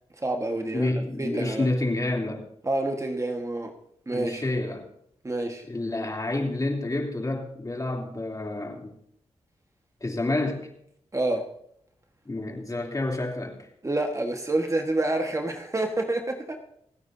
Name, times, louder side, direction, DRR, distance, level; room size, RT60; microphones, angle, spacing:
voice 1, 0.2-1.7 2.6-3.7 4.1-4.4 5.2-5.6 11.1-11.4 13.8-16.6, right 2 dB, 25° right, 3 dB, 1.5 m, -28 dB
voice 2, 0.7-2.5 4.1-4.8 5.7-8.9 10.0-10.7 12.2-13.6, left 2 dB, 30° left, 1 dB, 3.1 m, -29 dB
28.0 x 9.4 x 2.7 m, 0.71 s
cardioid pair, 60°, 12 cm